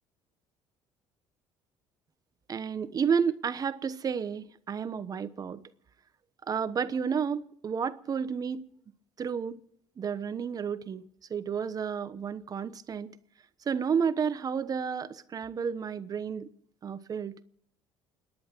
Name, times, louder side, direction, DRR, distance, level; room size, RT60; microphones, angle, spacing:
voice 1, 2.5-5.6 6.5-8.7 9.2-9.6 10.0-11.0 11.3-13.1 13.7-16.5 16.8-17.3, right 6 dB, 40° right, 1.0 m, -31 dB
29.0 x 10.5 x 4.5 m
supercardioid pair, 85°, 10 cm